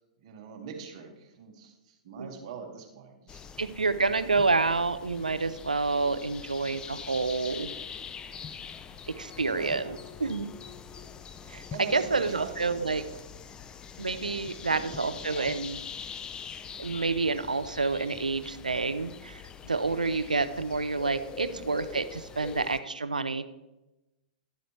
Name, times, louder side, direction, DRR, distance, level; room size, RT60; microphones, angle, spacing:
voice 1, 0.2-3.5 9.3-10.0 11.7-13.1 14.5-15.7 21.5-21.7, right 5 dB, 50° right, 3 dB, 1.8 m, -43 dB
sound 1, 3.3-22.8, left 7 dB, 20° left, 0.5 m, -44 dB
voice 2, 3.6-7.7 9.2-10.5 11.5-13.0 14.0-15.8 16.8-23.5, right 3 dB, 90° right, 13 dB, 0.6 m, -28 dB
12.0 x 7.7 x 3.2 m, 0.99 s
figure-of-eight pair, 110°, 4 cm